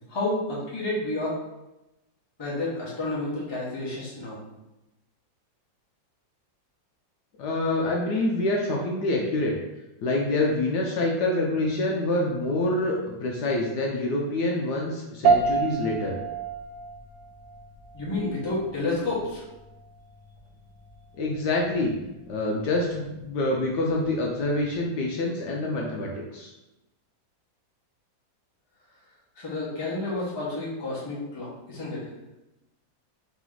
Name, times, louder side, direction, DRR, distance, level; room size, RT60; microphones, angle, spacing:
voice 1, 0.1-1.4 2.4-4.4 17.9-19.4 29.3-32.1, left 2 dB, 20° left, -7 dB, 0.9 m, -30 dB
voice 2, 7.4-9.5 10.0-16.2 21.2-21.9 22.3-26.5, left 2 dB, 70° left, -2 dB, 1.1 m, -26 dB
sound 1, 15.2-24.8, right 5 dB, 80° right, 1.3 m, -30 dB
4.0 x 3.0 x 3.8 m, 0.97 s
omnidirectional pair, 2.0 m